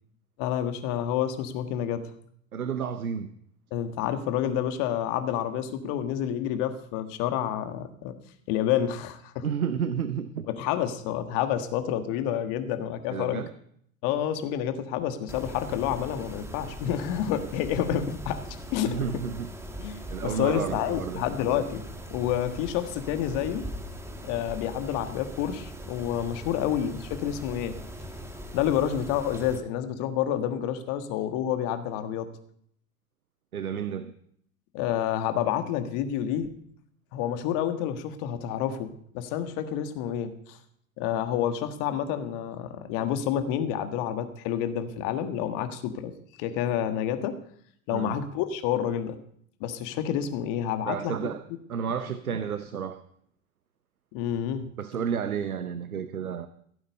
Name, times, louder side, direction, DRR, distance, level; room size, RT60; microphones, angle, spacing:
voice 1, 0.4-2.1 3.7-8.2 8.5-9.5 10.5-13.4 14.0-18.4 18.7-19.2 19.8-21.8 22.1-23.6 24.2-27.7 28.5-32.3 34.7-36.6 37.1-40.6 41.0-46.1 46.4-47.4 47.9-49.2 49.6-51.3 54.1-54.8, left 10 dB, 50° left, 9 dB, 1.6 m, -29 dB
voice 2, 2.5-3.3 9.4-10.5 13.1-13.5 18.9-19.5 20.1-21.2 33.5-34.1 47.9-48.2 50.8-51.4 51.7-53.0 54.8-56.5, right 7 dB, 90° right, 11 dB, 0.8 m, -31 dB
Mechanisms, 15.3-29.6, equal, 5° right, 1.7 m, -40 dB
16.0 x 8.8 x 5.4 m, 0.66 s
figure-of-eight pair, 85°, 42 cm